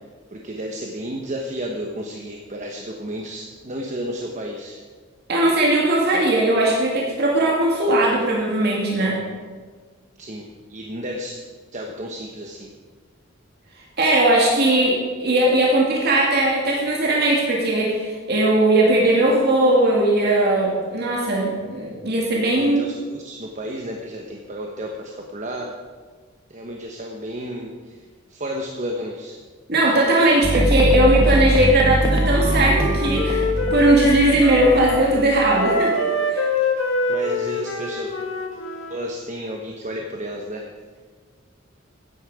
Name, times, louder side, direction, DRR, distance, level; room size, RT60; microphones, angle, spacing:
voice 1, 0.3-4.8 10.2-11.4 11.7-12.7 22.6-25.7 26.5-28.0 28.3-29.4 37.1-38.1 38.9-40.7, equal, 40° right, 1 dB, 1.1 m, -32 dB
voice 2, 5.3-9.2 14.0-22.9 29.7-36.5, right 1 dB, 55° right, -3 dB, 2.3 m, -19 dB
sound 1, 30.4-35.6, right 1 dB, 20° right, 1.0 m, -22 dB
Wind instrument woodwind instrument, 32.1-35.1 35.5-39.0, left 2 dB, 75° left, 1.7 m, -25 dB
15.0 x 9.9 x 4.9 m, 1.5 s
head